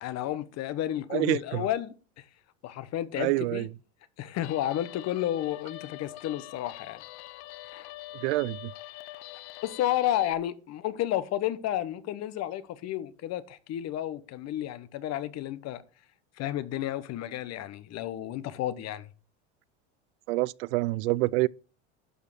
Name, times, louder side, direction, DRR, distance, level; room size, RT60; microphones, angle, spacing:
voice 1, 0.0-1.9 2.6-3.7 4.2-7.0 7.7-7.9 9.6-15.8 16.4-19.1, left 12 dB, 50° left, 1.1 m, -31 dB
voice 2, 1.1-1.6 3.2-3.7 8.2-8.7 20.3-21.5, right 21 dB, 80° right, 0.5 m, -27 dB
Guitar, 4.4-10.3, left 17 dB, 75° left, 0.7 m, -44 dB
11.5 x 5.1 x 6.3 m
supercardioid pair, 110°, 34 cm